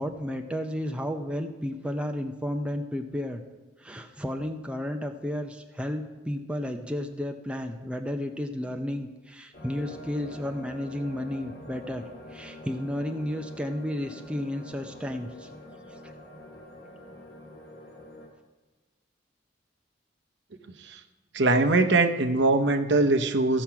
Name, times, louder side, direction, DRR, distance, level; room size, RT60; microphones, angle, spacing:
voice 1, 0.0-3.4 3.8-12.0 12.3-15.5 16.0-16.1, left 1 dB, 5° right, 5 dB, 0.5 m, -32 dB
sound 1, 9.5-18.3, left 1 dB, 55° left, 2.0 m, -46 dB
voice 2, 21.3-23.6, right 2 dB, 70° right, 7 dB, 0.7 m, -22 dB
15.0 x 6.0 x 5.7 m, 1.2 s
head